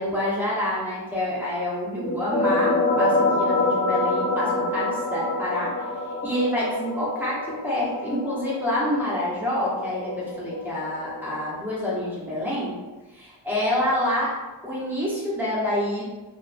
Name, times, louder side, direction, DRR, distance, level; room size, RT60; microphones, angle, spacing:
voice 1, 0.0-5.7 6.2-12.7 13.1-14.3 14.6-16.0, left 1 dB, 5° right, -7 dB, 1.0 m, -27 dB
sound 1, 2.0-11.4, left 2 dB, 20° left, 1.1 m, -26 dB
2.8 x 2.4 x 2.5 m, 1.2 s
wide cardioid pair, 45°, 46 cm